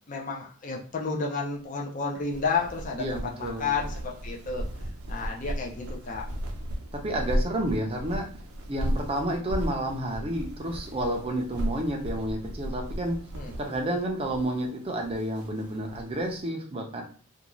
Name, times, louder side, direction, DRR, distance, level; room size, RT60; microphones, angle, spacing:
voice 1, 0.1-4.7 5.1-6.3 13.3-13.6, left 4 dB, 35° left, -1 dB, 0.4 m, -31 dB
sound 1, 2.1-16.3, equal, 80° right, 0.6 m, -35 dB
voice 2, 3.0-3.7 7.0-8.3 8.7-13.2 13.6-17.0, right 1 dB, 25° right, 2 dB, 0.5 m, -30 dB
2.5 x 2.3 x 3.0 m, 0.43 s
head